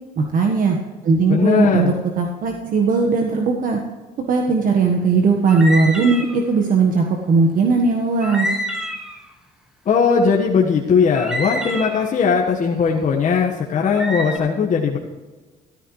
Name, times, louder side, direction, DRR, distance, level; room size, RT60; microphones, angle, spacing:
voice 1, 0.2-0.8 1.0-3.8 4.3-8.5, right 4 dB, 55° right, 2 dB, 1.5 m, -18 dB
voice 2, 1.3-1.9 9.8-15.0, left 6 dB, 45° left, -2 dB, 1.6 m, -18 dB
sound 1, 5.5-6.4 8.2-9.2 11.1-12.1 13.8-14.4, equal, 5° right, 1.8 m, -27 dB
13.5 x 13.5 x 3.3 m, 1.3 s
cardioid pair, 110°, 17 cm